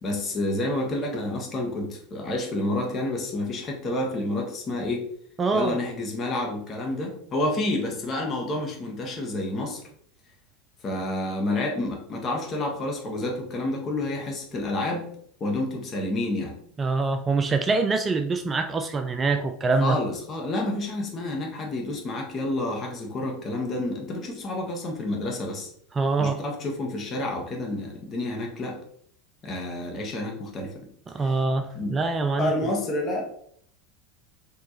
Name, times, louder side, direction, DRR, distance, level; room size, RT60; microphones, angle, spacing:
voice 1, 0.0-5.0 5.5-9.8 10.8-15.1 15.4-16.6 19.8-25.7 26.2-28.8 29.4-30.7 31.2-31.4 31.7-31.9 32.4-33.2, left 2 dB, 35° left, 0 dB, 1.3 m, -29 dB
voice 2, 5.4-5.8 16.8-20.0 25.9-26.4 31.1-32.7, right 3 dB, 25° right, 8 dB, 0.4 m, -24 dB
4.3 x 2.9 x 3.0 m, 0.65 s
figure-of-eight pair, 80°, 0 cm